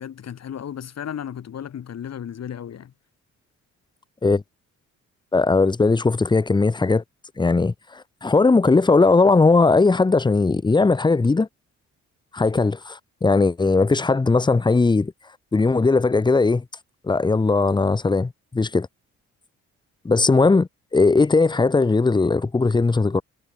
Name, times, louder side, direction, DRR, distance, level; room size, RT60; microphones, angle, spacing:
voice 1, 0.0-2.9, left 9 dB, 60° left, 5.1 m, -34 dB
voice 2, 5.3-7.0 7.4-11.5 12.3-15.1 15.5-16.6 17.0-18.9 20.0-23.2, left 3 dB, 15° left, 0.8 m, -18 dB
cardioid pair, 90°, 30 cm